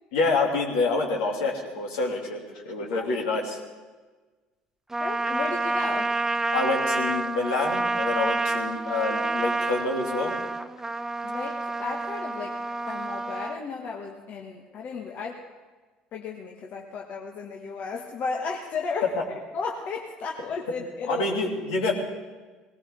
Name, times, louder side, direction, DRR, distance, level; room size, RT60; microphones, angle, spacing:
voice 1, 0.1-3.6 6.5-10.3 19.2-19.3 21.1-21.9, left 3 dB, 70° left, 0 dB, 2.7 m, -27 dB
Trumpet, 4.9-13.6, right 2 dB, 15° right, 0.8 m, -28 dB
voice 2, 5.0-6.1 11.2-15.4 16.1-19.1 19.5-21.3, left 4 dB, 50° left, 0 dB, 1.6 m, -34 dB
20.0 x 18.5 x 3.7 m, 1.3 s
hypercardioid pair, 60°, 3 cm